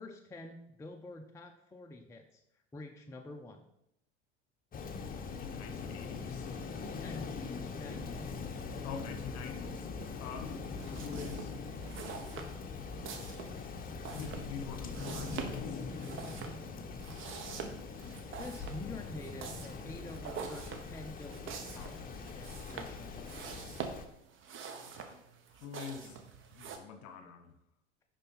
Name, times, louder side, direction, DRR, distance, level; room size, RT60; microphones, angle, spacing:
voice 1, 0.0-2.4 2.7-3.7 7.0-8.4 18.4-23.4, left 2 dB, 10° left, 4 dB, 0.6 m, -48 dB
Rain, 4.7-24.0, left 4 dB, 25° left, 0.9 m, -42 dB
voice 2, 5.4-6.5 8.8-9.9 10.2-11.6 11.8-12.7 14.1-15.9 21.7-22.0 24.7-27.6, left 6 dB, 45° left, 7 dB, 1.2 m, -47 dB
sound 1, 10.7-26.8, right 6 dB, 35° right, 1.1 m, -46 dB
10.5 x 4.0 x 4.1 m, 0.80 s
figure-of-eight pair, 75°, 36 cm